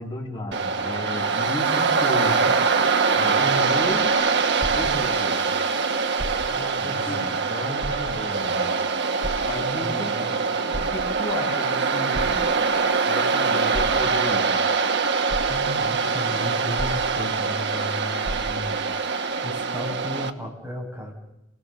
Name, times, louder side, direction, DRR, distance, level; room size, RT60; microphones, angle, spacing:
voice 1, 0.0-2.6 3.2-4.3 4.7-5.5 6.4-8.6 9.4-12.5 13.1-14.5, equal, 25° left, -2 dB, 5.9 m, -33 dB
Waves surf, 0.5-20.3, right 4 dB, 60° right, 1.2 m, -23 dB
sound 1, 4.2-5.5 6.1-6.8 7.2-7.3 7.8-8.5 9.2-10.0 10.5-11.4 12.1-12.9 13.7-14.4 14.9-15.0 15.3-16.0 16.8-17.6 17.8-17.9 18.2-18.9 19.6-19.7, equal, 35° right, 3.5 m, -34 dB
voice 2, 6.8-7.4 9.8-10.3 15.5-21.1, left 1 dB, 10° right, -1 dB, 6.5 m, -35 dB
29.5 x 19.0 x 6.8 m, 0.92 s
head